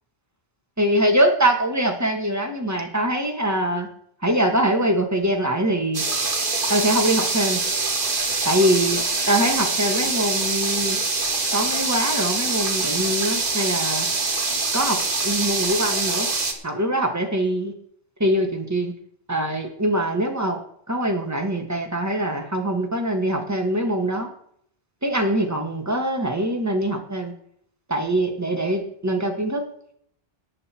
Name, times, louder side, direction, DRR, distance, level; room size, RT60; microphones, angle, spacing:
voice 1, 0.8-3.9 4.2-6.0 6.7-7.6 8.5-9.0 9.3-11.0 11.5-14.1 14.7-16.3 16.6-17.7 18.2-18.9 19.3-20.6 20.9-24.3 25.0-27.3 27.9-29.6, right 1 dB, 15° right, 3 dB, 1.8 m, -23 dB
sound 1, 5.9-16.5, right 3 dB, 55° right, 1.7 m, -24 dB
18.5 x 6.5 x 4.5 m, 0.66 s
omnidirectional pair, 1.1 m